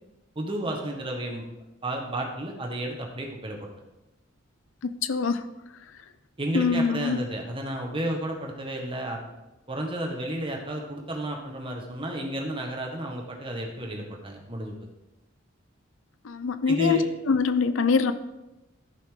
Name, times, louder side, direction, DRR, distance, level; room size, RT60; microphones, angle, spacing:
voice 1, 0.3-1.4 1.8-3.7 6.4-9.2 9.7-14.9 16.7-17.0, right 1 dB, 25° right, 1 dB, 1.5 m, -32 dB
voice 2, 4.8-5.4 6.5-7.2 16.2-17.0 17.3-18.1, left 5 dB, 75° left, 11 dB, 0.5 m, -24 dB
14.0 x 5.5 x 3.8 m, 0.99 s
head